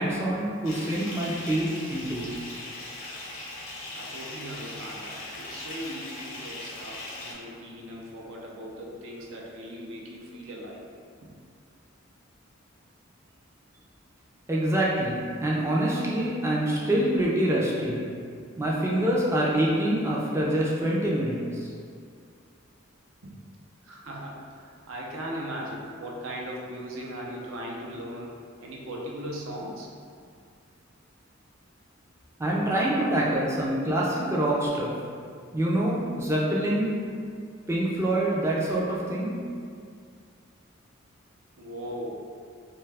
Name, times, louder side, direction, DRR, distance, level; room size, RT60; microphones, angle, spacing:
voice 1, 0.0-2.3 14.5-18.0 18.6-21.7 32.4-34.9 35.5-36.9 37.7-39.3, right 1 dB, 15° right, -5 dB, 0.3 m, -25 dB
Bathtub (filling or washing) / Fill (with liquid), 0.6-7.3, left 2 dB, 85° left, 0.8 m, -39 dB
voice 2, 3.9-10.8 11.2-11.3 23.2-23.3 23.8-28.3 28.6-29.9 41.6-42.2, equal, 80° right, -2 dB, 0.5 m, -38 dB
2.7 x 2.2 x 3.2 m, 2.2 s
head